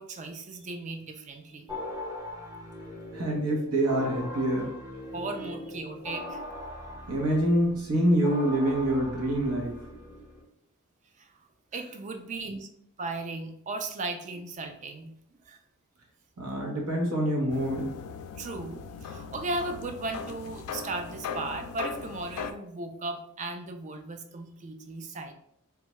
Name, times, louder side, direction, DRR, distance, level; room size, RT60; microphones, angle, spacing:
voice 1, 0.0-1.7 5.1-6.4 11.2-11.3 11.7-12.7 13.0-15.1 15.5-15.6 18.4-25.3, right 2 dB, 35° right, 6 dB, 0.4 m, -36 dB
sound 1, 1.7-10.4, left 1 dB, 15° right, 0.8 m, -40 dB
voice 2, 3.1-4.7 5.4-5.5 7.1-9.7 16.4-17.9, right 1 dB, 90° right, -1 dB, 1.0 m, -26 dB
sound 2, 17.5-22.5, left 6 dB, 80° left, 0.3 m, -39 dB
3.5 x 2.2 x 3.0 m, 0.73 s
head